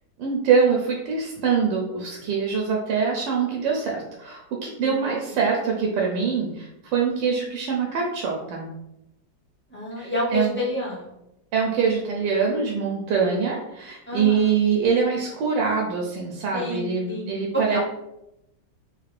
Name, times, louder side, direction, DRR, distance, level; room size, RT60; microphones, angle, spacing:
voice 1, 0.2-8.7 10.0-10.5 11.5-17.8, right 5 dB, 85° right, -1 dB, 1.3 m, -24 dB
voice 2, 4.8-5.4 9.7-11.1 14.1-14.5 16.5-17.8, left 1 dB, 15° left, -7 dB, 0.3 m, -29 dB
3.7 x 2.4 x 3.2 m, 0.86 s
omnidirectional pair, 2.0 m